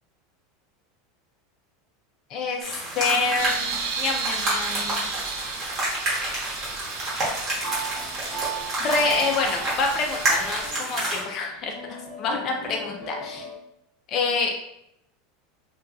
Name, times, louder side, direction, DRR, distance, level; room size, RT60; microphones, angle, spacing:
voice 1, 2.3-5.1 8.8-13.5 14.1-14.6, left 4 dB, 35° left, 1 dB, 0.5 m, -27 dB
sound 1, 2.6-11.2, right 1 dB, 30° right, 1.1 m, -29 dB
sound 2, 3.4-10.7, right 5 dB, 70° right, 0.4 m, -34 dB
sound 3, 4.5-5.3 6.0-6.6 7.6-13.5, right 4 dB, ahead, 1.1 m, -37 dB
2.8 x 2.3 x 2.3 m, 0.79 s
supercardioid pair, 145°, 0 cm